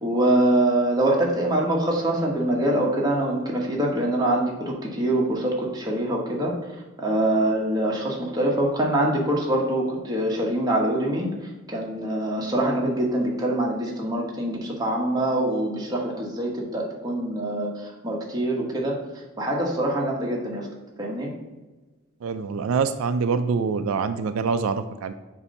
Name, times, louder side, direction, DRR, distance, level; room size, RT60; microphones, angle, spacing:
voice 1, 0.0-6.5 7.0-11.3 11.7-19.0 19.4-20.7 21.0-21.3, right 1 dB, 20° right, -2 dB, 1.0 m, -24 dB
voice 2, 22.2-25.1, right 5 dB, 80° right, 10 dB, 0.3 m, -25 dB
7.0 x 2.7 x 5.2 m, 1.2 s
head